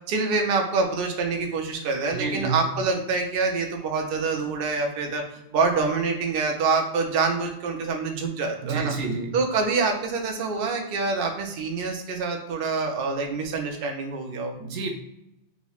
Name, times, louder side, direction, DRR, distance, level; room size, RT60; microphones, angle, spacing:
voice 1, 0.1-5.2 5.5-8.9 9.3-14.5, right 4 dB, 60° right, 2 dB, 0.7 m, -26 dB
voice 2, 2.1-2.6 8.6-9.4 14.6-14.9, right 4 dB, 85° right, 3 dB, 1.0 m, -29 dB
4.1 x 3.0 x 2.3 m, 0.85 s
omnidirectional pair, 1.2 m